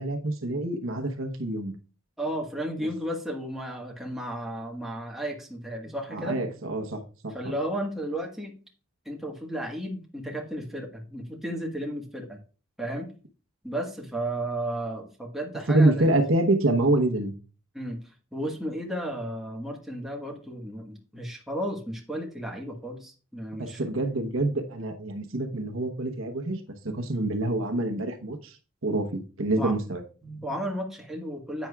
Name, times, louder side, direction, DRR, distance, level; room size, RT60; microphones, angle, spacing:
voice 1, 0.0-1.7 6.1-7.3 15.7-17.3 23.5-26.6 26.8-28.6 28.8-30.0, right 2 dB, 70° right, 5 dB, 1.0 m, -26 dB
voice 2, 2.2-6.4 7.3-8.5 9.0-12.4 12.8-13.1 13.6-16.1 17.7-18.0 18.3-23.9 29.6-29.7 30.2-31.7, right 1 dB, ahead, 0 dB, 1.4 m, -33 dB
10.5 x 8.2 x 2.3 m, 0.36 s
head